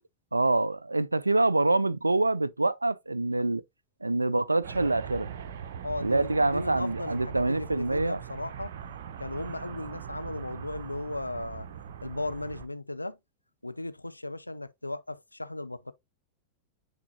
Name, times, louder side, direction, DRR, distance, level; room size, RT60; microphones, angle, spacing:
voice 1, 0.3-3.6 4.0-5.3 6.0-8.2, right 2 dB, 85° right, 0.3 m, -26 dB
sound 1, 4.6-12.7, right 8 dB, 60° right, 0.7 m, -41 dB
voice 2, 5.8-8.7 9.2-11.7 12.0-13.2 13.6-15.9, left 2 dB, 85° left, 0.4 m, -36 dB
9.5 x 3.6 x 2.7 m
figure-of-eight pair, 90°, 0 cm